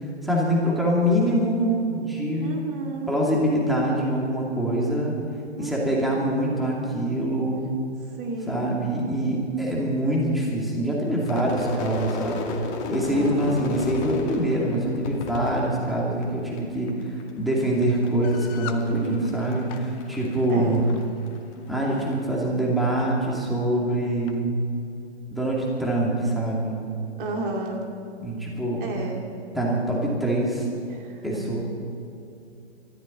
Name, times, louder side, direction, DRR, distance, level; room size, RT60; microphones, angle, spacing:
voice 1, 0.2-2.5 3.1-5.1 5.6-7.7 8.5-12.4 12.9-20.8 21.7-24.6 25.3-26.8 28.2-28.9 29.5-30.7 31.2-31.6, right 1 dB, ahead, -4 dB, 2.6 m, -24 dB
voice 2, 2.4-3.2 5.6-6.2 8.2-8.8 13.1-13.6 18.9-19.5 20.5-20.8 27.2-27.9 28.8-29.3 30.8-31.5, right 2 dB, 50° right, 1 dB, 2.6 m, -32 dB
Crowd / Fireworks, 11.2-16.6 16.9-17.5 17.8-21.4, left 3 dB, 30° left, 2.2 m, -34 dB
sound 1, 18.2-18.9 19.5-19.9 20.9-21.1 21.8-22.2 23.0-23.1 23.4-23.5 24.3-24.4, left 11 dB, 15° left, 0.5 m, -40 dB
24.0 x 14.0 x 4.1 m, 2.7 s
hypercardioid pair, 130°, 34 cm